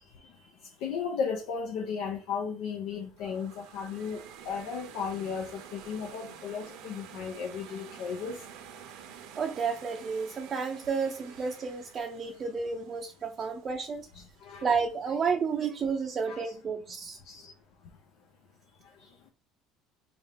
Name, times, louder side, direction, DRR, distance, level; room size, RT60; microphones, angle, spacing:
voice 1, 0.8-8.4 14.1-14.7 15.0-15.1 16.3-16.5 17.2-17.5, left 6 dB, 75° left, 0.7 m, -35 dB
sound 1, 3.2-14.2, right 8 dB, 75° right, 0.7 m, -49 dB
voice 2, 9.4-14.1 14.6-17.2, right 5 dB, 40° right, 0.5 m, -31 dB
3.7 x 3.5 x 2.8 m
supercardioid pair, 90°, 0 cm